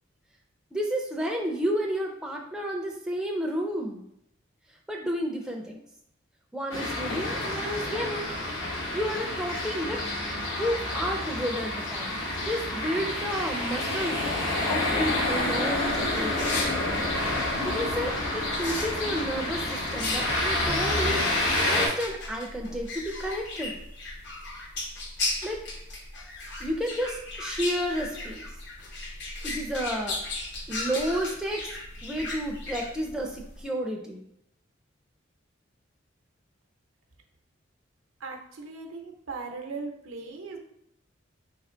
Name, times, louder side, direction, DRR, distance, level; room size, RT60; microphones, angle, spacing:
voice 1, 0.7-4.0 4.9-5.8 6.5-8.4 8.9-10.0 10.6-14.2 14.6-16.6 17.6-21.2 21.7-23.7 25.4-25.6 26.6-28.5 29.4-30.2 30.7-31.7 32.0-34.2, equal, 5° right, 0 dB, 0.4 m, -31 dB
sound 1, 6.7-21.9, left 1 dB, 75° left, 1.0 m, -29 dB
sound 2, 14.8-33.6, left 2 dB, 55° left, 0.7 m, -37 dB
voice 2, 38.2-40.6, right 4 dB, 90° right, 3 dB, 0.7 m, -38 dB
3.3 x 3.1 x 3.7 m, 0.75 s
head